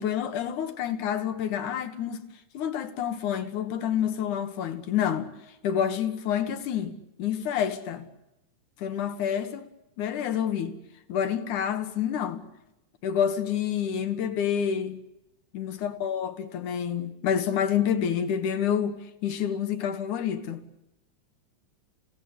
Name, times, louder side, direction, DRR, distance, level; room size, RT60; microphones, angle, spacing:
voice 1, 0.0-2.2 2.5-5.3 5.6-8.1 8.8-9.7 10.0-10.7 11.1-12.4 13.0-15.0 15.5-20.6, left 8 dB, 80° left, 3.1 m, -28 dB
29.5 x 17.0 x 9.6 m
omnidirectional pair, 3.4 m